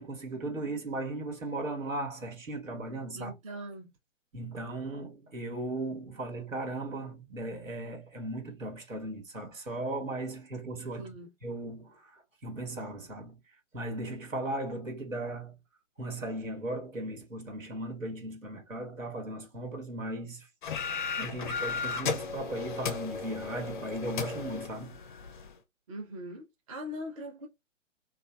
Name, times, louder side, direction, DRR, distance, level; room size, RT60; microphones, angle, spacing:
voice 1, 0.0-3.3 4.3-11.1 11.4-13.4 13.7-15.6 16.0-20.5 20.8-25.0, right 2 dB, 85° right, 1.3 m, -37 dB
voice 2, 3.1-3.9 11.0-11.3 25.9-27.5, equal, 25° right, 0.5 m, -41 dB
sound 1, 20.6-25.5, left 5 dB, 40° left, 0.4 m, -35 dB
2.9 x 2.2 x 2.2 m
figure-of-eight pair, 130°, 38 cm